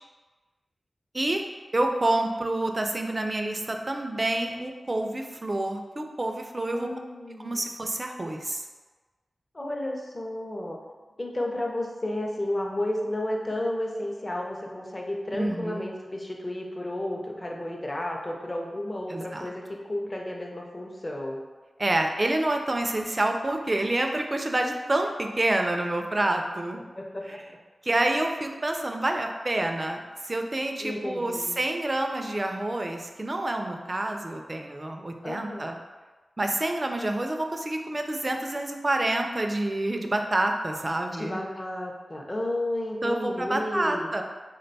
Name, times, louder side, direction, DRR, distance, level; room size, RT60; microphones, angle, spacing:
voice 1, 1.7-6.9 7.4-8.7 15.3-15.9 19.1-19.5 21.8-26.8 27.8-35.7 36.4-41.4 43.0-44.2, right 1 dB, 30° right, 4 dB, 0.3 m, -28 dB
voice 2, 6.7-7.6 9.5-10.8 11.2-21.4 26.8-27.2 30.8-31.6 35.2-35.7 40.9-44.1, left 1 dB, 30° left, 0 dB, 0.5 m, -32 dB
3.6 x 2.2 x 3.9 m, 1.3 s
wide cardioid pair, 110°, 0 cm